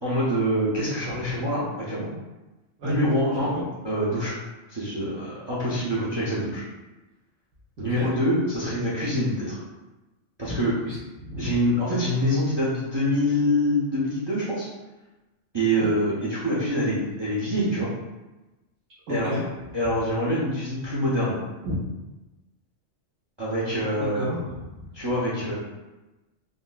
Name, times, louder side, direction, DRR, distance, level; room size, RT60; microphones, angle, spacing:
voice 1, 0.0-2.1 2.8-4.4 4.7-6.6 7.8-9.6 10.4-10.7 11.4-14.7 15.5-17.9 19.1-19.3 19.7-21.4 23.4-24.3 24.9-25.5, equal, 35° right, -8 dB, 0.4 m, -25 dB
voice 2, 10.4-11.6 15.8-15.9 19.1-19.4 21.6-21.9 24.0-24.9, left 1 dB, 85° right, -8 dB, 1.1 m, -32 dB
3.8 x 2.0 x 2.3 m, 1.1 s
omnidirectional pair, 1.3 m